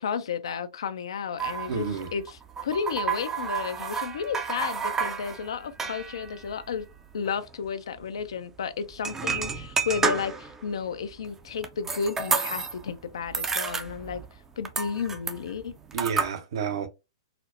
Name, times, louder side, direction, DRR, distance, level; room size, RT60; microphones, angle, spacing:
voice 1, 0.0-6.9 7.1-14.2 14.6-15.8, left 6 dB, 70° left, 0.5 m, -32 dB
sound 1, 1.4-7.4 7.7-7.8 8.0-8.2 8.9-10.6 11.1-12.9 13.2-14.4 14.6-16.3, right 5 dB, 15° right, 0.4 m, -31 dB
voice 2, 1.7-2.1 15.9-16.9, right 6 dB, 60° right, 0.7 m, -30 dB
4.2 x 2.0 x 2.5 m
hypercardioid pair, 120°, 3 cm